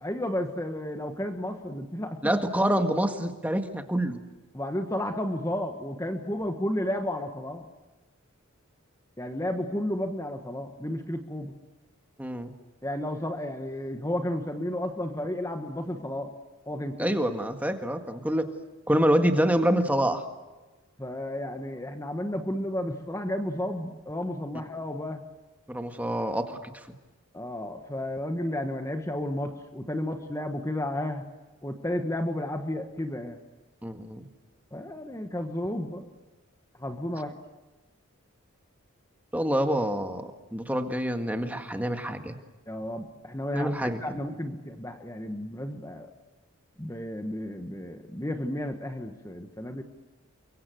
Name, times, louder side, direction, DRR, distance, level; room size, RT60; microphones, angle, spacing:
voice 1, 0.0-2.3 4.5-7.7 9.2-11.5 12.8-16.3 16.6-17.1 21.0-25.2 27.3-31.2 31.6-33.4 34.7-36.0 36.8-37.3 42.7-46.1 46.8-49.8, left 1 dB, 15° left, 6 dB, 1.5 m, -32 dB
voice 2, 2.2-4.2 12.2-12.5 17.0-18.5 18.9-20.2 25.7-26.7 33.8-34.3 39.3-42.4 43.5-44.0, equal, 5° right, 6 dB, 1.8 m, -26 dB
30.0 x 23.5 x 7.9 m, 1.1 s
head